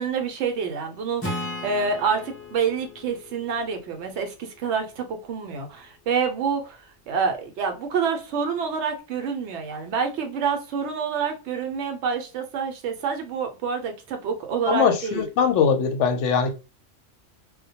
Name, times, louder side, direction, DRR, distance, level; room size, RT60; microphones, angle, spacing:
voice 1, 0.0-6.8 7.1-15.3, right 6 dB, 70° right, 0.8 m, -27 dB
Acoustic guitar / Strum, 1.2-4.7, left 1 dB, 20° left, 0.3 m, -36 dB
voice 2, 14.7-16.5, left 6 dB, 70° left, 0.9 m, -21 dB
2.2 x 2.1 x 2.7 m
omnidirectional pair, 1.3 m